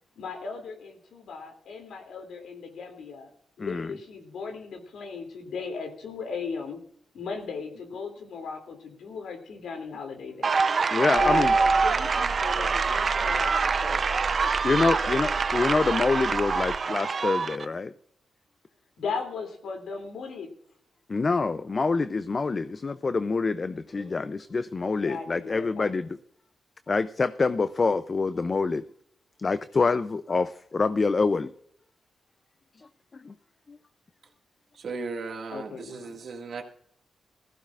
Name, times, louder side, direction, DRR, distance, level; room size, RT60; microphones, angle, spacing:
voice 1, 0.2-3.3 3.6-6.8 7.1-10.6 11.2-14.0 14.4-14.5 14.9-15.1 19.0-20.5 24.9-26.0 35.5-36.1, left 5 dB, 85° left, 4 dB, 2.7 m, -37 dB
voice 2, 3.6-4.0 10.9-11.5 14.6-17.9 21.1-26.1 26.9-28.8 29.4-31.5 32.8-32.9 33.1-33.3 33.7-33.8, left 4 dB, 30° left, 12 dB, 0.4 m, -26 dB
sound 1, 10.4-17.6, right 4 dB, 45° right, 0.6 m, -25 dB
sound 2, 11.2-16.8, right 4 dB, 25° right, 3.7 m, -37 dB
voice 3, 34.7-36.6, right 4 dB, 60° right, 2 dB, 1.9 m, -36 dB
19.0 x 15.0 x 2.5 m, 0.67 s
wide cardioid pair, 125°, 0 cm